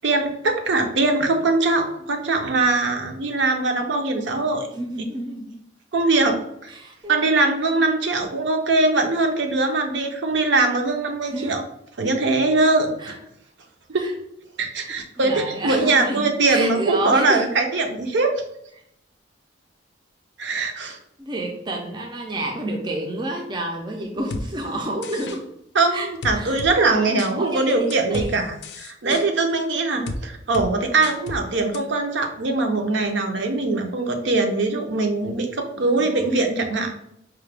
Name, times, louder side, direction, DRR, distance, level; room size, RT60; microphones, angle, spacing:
voice 1, 0.0-4.7 5.9-6.4 6.6-6.7 7.1-11.6 12.0-13.1 13.9-14.0 14.6-18.3 20.4-21.0 25.7-28.4 28.8-37.1, right 3 dB, 70° right, 4 dB, 0.6 m, -21 dB
voice 2, 4.7-5.5 6.7-7.2 11.3-11.6 13.0-13.2 13.9-14.1 14.8-17.5 20.8-25.4 25.9-26.1 26.3-28.3 29.0-29.3 35.8-36.3, right 1 dB, 25° right, 1 dB, 0.4 m, -30 dB
sound 1, 24.3-24.5 25.0-25.4 26.2-26.7 27.2-27.3 27.9-28.3 28.6-29.2 30.1-30.2 30.5-30.7 31.0-31.4 31.7-31.8, left 2 dB, 60° left, 0.4 m, -31 dB
4.6 x 2.2 x 3.3 m, 0.78 s
head